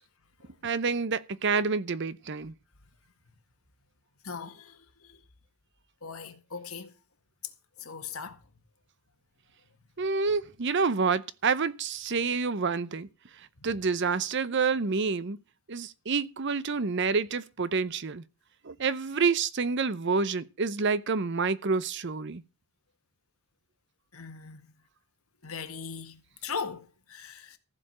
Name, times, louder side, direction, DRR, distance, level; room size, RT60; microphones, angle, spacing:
voice 1, 0.6-2.5 10.0-13.1 13.4-15.4 15.7-18.2 18.6-22.4, right 4 dB, 55° right, 0.7 m, -28 dB
voice 2, 4.2-5.2 6.0-6.9 7.8-8.4 13.6-13.7 24.1-24.6 25.4-27.6, left 5 dB, 80° left, 1.8 m, -39 dB
15.0 x 5.0 x 7.6 m
head